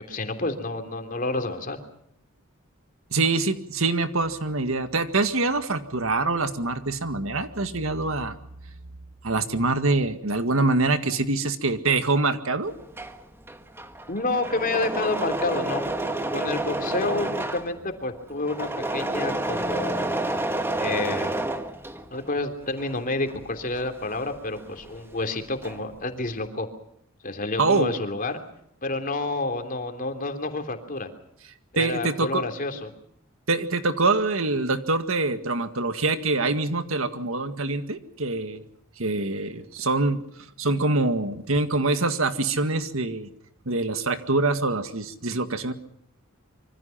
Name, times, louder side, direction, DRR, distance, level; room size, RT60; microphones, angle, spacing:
voice 1, 0.0-1.8 14.1-15.8 16.3-20.3 20.8-21.3 22.1-26.7 27.2-28.4 28.8-31.1 31.7-32.9, left 2 dB, 40° left, 6 dB, 3.2 m, -29 dB
voice 2, 3.1-8.3 9.2-12.7 27.6-27.9 31.8-32.4 33.5-38.6 39.0-40.2 40.6-43.3 43.7-45.7, right 3 dB, 75° right, 9 dB, 1.9 m, -25 dB
Engine / Mechanisms, 12.7-22.3 22.6-25.0 25.3-26.0, right 2 dB, 10° right, 1.6 m, -30 dB
26.0 x 24.5 x 5.8 m, 0.71 s
head